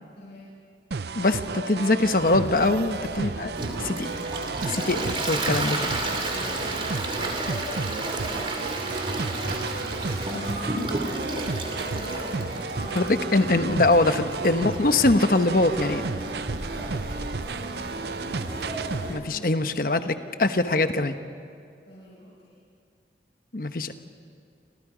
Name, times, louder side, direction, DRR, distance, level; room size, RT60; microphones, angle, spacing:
voice 1, 0.1-0.5 4.7-5.8 6.2-9.0 10.2-10.8 11.4-14.3 16.6-17.0 17.6-19.8 20.2-20.3 21.9-22.6, equal, 70° left, -7 dB, 6.6 m, -46 dB
sound 1, 0.9-19.2, right 4 dB, 70° right, 0.6 m, -33 dB
voice 2, 1.1-3.5 3.8-4.1 4.9-5.8 12.9-16.1 19.1-21.2 23.5-23.9, left 2 dB, 55° left, 9 dB, 1.0 m, -23 dB
sound 2, 2.1-19.2, equal, 55° right, 5.5 m, -39 dB
Toilet flush, 3.5-19.1, right 2 dB, 30° right, 2.6 m, -33 dB
29.0 x 26.0 x 5.1 m, 2.4 s
head